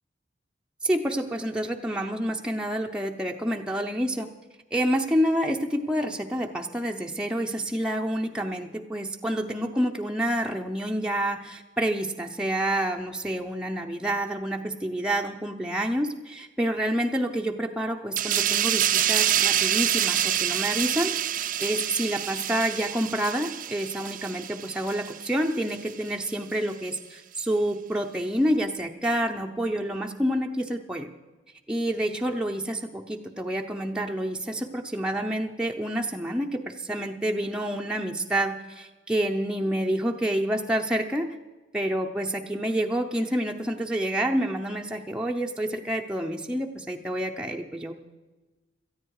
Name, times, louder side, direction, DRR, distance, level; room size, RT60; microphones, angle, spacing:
voice 1, 0.8-4.3 4.7-31.1 31.7-41.3 41.7-47.9, right 1 dB, 5° right, 1 dB, 0.7 m, -28 dB
sound 1, 18.2-25.3 25.7-25.9, right 11 dB, 45° right, 0.6 m, -26 dB
18.0 x 13.5 x 4.8 m, 1.2 s
head